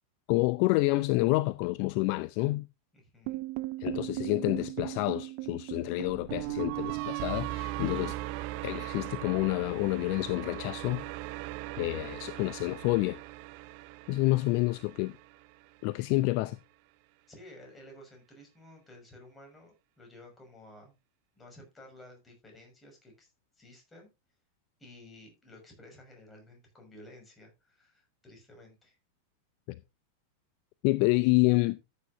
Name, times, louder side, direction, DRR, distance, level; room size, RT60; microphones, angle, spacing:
voice 1, 0.3-2.6 3.8-8.2 8.6-11.0 11.8-13.2 14.1-15.1 15.8-16.6 29.7-29.8 30.8-31.8, left 21 dB, 45° left, 0.5 m, -28 dB
voice 2, 2.9-3.4 17.3-20.9 21.4-24.1 24.8-29.0, left 1 dB, 15° left, 6.1 m, -53 dB
sound 1, 3.3-15.5, right 18 dB, 45° right, 0.7 m, -38 dB
14.0 x 8.6 x 2.7 m
figure-of-eight pair, 90°, 0 cm